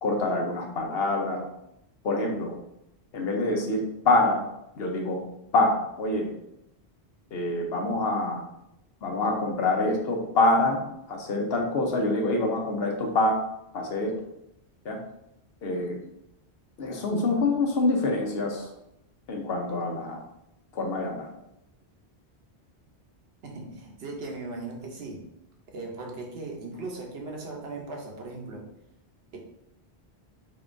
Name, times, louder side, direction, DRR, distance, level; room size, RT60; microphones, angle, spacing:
voice 1, 0.0-1.4 2.0-2.6 3.1-4.4 4.8-5.2 5.5-6.3 7.3-8.4 9.0-10.8 11.1-13.4 13.7-14.1 14.8-15.0 15.6-16.0 16.8-18.7 19.3-20.2 20.7-21.3, left 2 dB, 70° left, 2 dB, 0.9 m, -26 dB
voice 2, 23.4-25.2 25.7-28.7 29.3-29.4, right 3 dB, 70° right, 0 dB, 1.0 m, -38 dB
3.6 x 3.6 x 2.5 m, 0.81 s
omnidirectional pair, 1.1 m